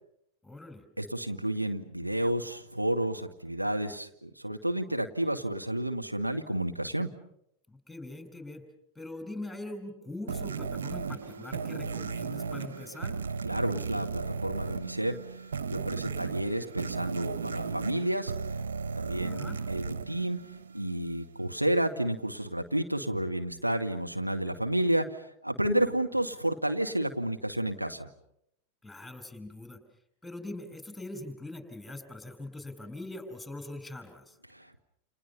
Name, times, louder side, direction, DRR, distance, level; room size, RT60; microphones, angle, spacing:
voice 1, 0.4-0.8 7.7-8.6 9.0-13.2 19.2-19.6 28.8-29.8 30.2-34.4, left 2 dB, ahead, 9 dB, 5.3 m, -42 dB
voice 2, 1.0-7.1 13.4-15.3 15.7-18.3 19.0-20.5 20.7-28.1 34.5-34.8, right 1 dB, 85° right, 4 dB, 1.8 m, -31 dB
sound 1, 10.3-21.1, right 5 dB, 70° right, 1.0 m, -36 dB
30.0 x 29.0 x 5.6 m, 0.73 s
figure-of-eight pair, 90°, 0 cm